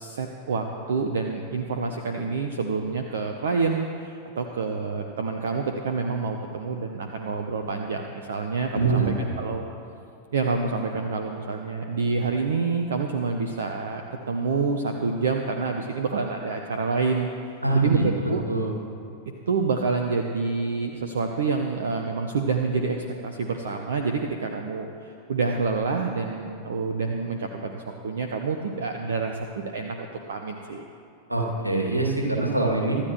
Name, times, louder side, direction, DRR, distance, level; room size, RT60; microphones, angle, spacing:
voice 1, 0.0-9.0 9.4-9.6 10.3-18.5 19.5-30.8, right 4 dB, 65° right, 4 dB, 0.9 m, -27 dB
voice 2, 8.7-9.3 17.6-18.8 31.3-33.0, right 2 dB, 85° right, 0 dB, 2.3 m, -24 dB
24.5 x 13.0 x 3.1 m, 2.6 s
figure-of-eight pair, 90°, 0 cm